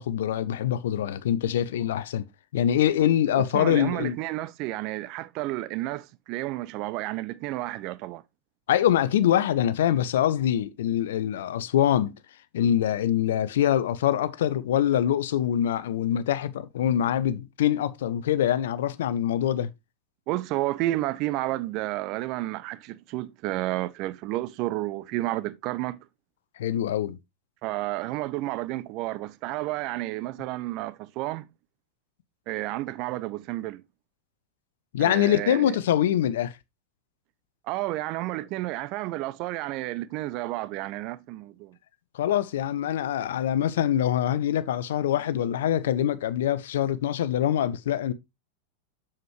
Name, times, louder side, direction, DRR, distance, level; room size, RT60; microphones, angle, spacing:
voice 1, 0.0-2.3 2.5-4.2 8.7-12.1 12.5-19.7 26.6-27.2 34.9-36.6 42.1-48.1, left 11 dB, 60° left, 0.7 m, -24 dB
voice 2, 3.3-8.2 20.3-26.0 27.6-31.5 32.5-33.8 35.0-35.8 37.7-41.8, right 17 dB, 40° right, 0.7 m, -31 dB
7.6 x 7.3 x 3.1 m
figure-of-eight pair, 90°, 0 cm